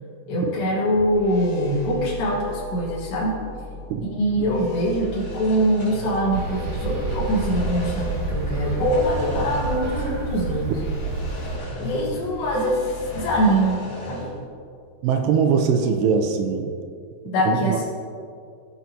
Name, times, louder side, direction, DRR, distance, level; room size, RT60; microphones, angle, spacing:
voice 1, 0.3-3.4 4.1-10.8 11.8-14.3 17.3-17.8, equal, 90° left, -6 dB, 3.9 m, -23 dB
sound 1, 0.8-13.6, equal, 60° left, 1.9 m, -38 dB
sound 2, 5.0-6.7 6.9-8.2 8.7-10.1 10.3-10.4 11.0-12.3 12.6-14.4, left 1 dB, 45° left, 2.1 m, -37 dB
sound 3, 6.3-11.6, right 3 dB, 55° right, 3.0 m, -29 dB
voice 2, 15.0-16.7 17.5-17.8, right 6 dB, 85° right, 5 dB, 2.6 m, -21 dB
17.5 x 7.5 x 2.9 m, 2.3 s
omnidirectional pair, 4.9 m